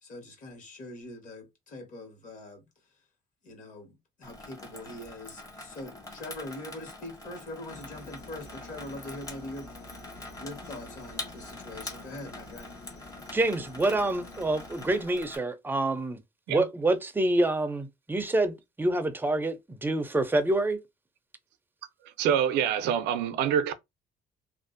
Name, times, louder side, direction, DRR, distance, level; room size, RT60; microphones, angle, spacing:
voice 1, 0.0-2.6 3.4-9.7 10.4-12.7, left 1 dB, 50° left, 1.2 m, -43 dB
Water tap faucet / Sink (filling or washing), 4.2-15.4, left 2 dB, 20° left, 0.7 m, -44 dB
sound 1, 7.7-15.0, left 2 dB, 75° left, 1.0 m, -49 dB
voice 2, 13.3-16.2 16.5-20.8, right 2 dB, 10° right, 0.4 m, -27 dB
voice 3, 22.2-23.7, right 8 dB, 85° right, 0.4 m, -26 dB
2.5 x 2.0 x 2.5 m
cardioid pair, 110°, 17 cm